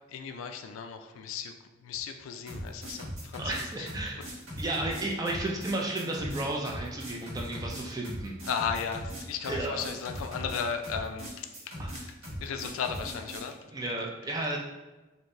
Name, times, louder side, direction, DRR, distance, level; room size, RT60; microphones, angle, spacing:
voice 1, 0.1-1.5 1.8-3.9 8.5-13.6, left 6 dB, 80° left, 7 dB, 0.3 m, -36 dB
sound 1, 2.5-13.5, equal, 90° right, 1.4 m, -39 dB
voice 2, 3.4-4.2 4.6-8.3 9.5-9.9 11.8-11.9 13.7-14.6, right 2 dB, 20° right, -1 dB, 0.4 m, -33 dB
3.1 x 2.6 x 2.5 m, 1.1 s
head